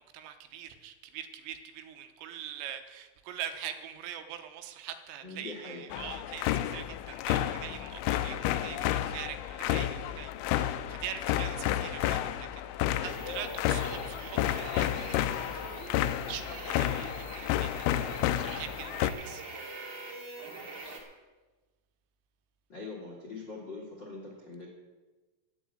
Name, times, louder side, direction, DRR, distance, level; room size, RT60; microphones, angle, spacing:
voice 1, 0.0-18.0 18.4-19.4, right 10 dB, 80° right, 7 dB, 3.5 m, -43 dB
voice 2, 5.2-5.8 22.7-24.7, left 3 dB, 50° left, -2 dB, 1.3 m, -42 dB
sound 1, 5.9-19.1, left 12 dB, 85° left, 3.2 m, -31 dB
sound 2, 13.1-21.0, right 2 dB, 35° right, 2.1 m, -44 dB
12.0 x 8.8 x 9.0 m, 1.2 s
omnidirectional pair, 6.0 m